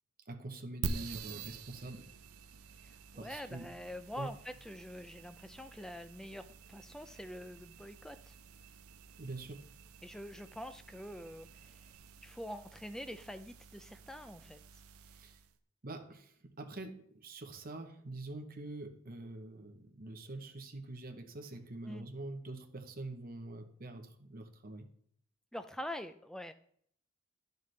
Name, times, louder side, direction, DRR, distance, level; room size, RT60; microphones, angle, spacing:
voice 1, 0.3-2.1 3.2-3.7 4.2-4.3 9.2-9.7 15.1-15.4 15.8-24.9, right 2 dB, 40° right, 6 dB, 0.9 m, -45 dB
sound 1, 0.8-15.5, right 4 dB, 80° right, 0.6 m, -48 dB
voice 2, 2.8-8.3 10.0-11.8 12.2-14.6 21.9-22.1 25.5-26.5, equal, 5° left, 10 dB, 0.4 m, -45 dB
11.0 x 6.7 x 3.3 m, 0.65 s
head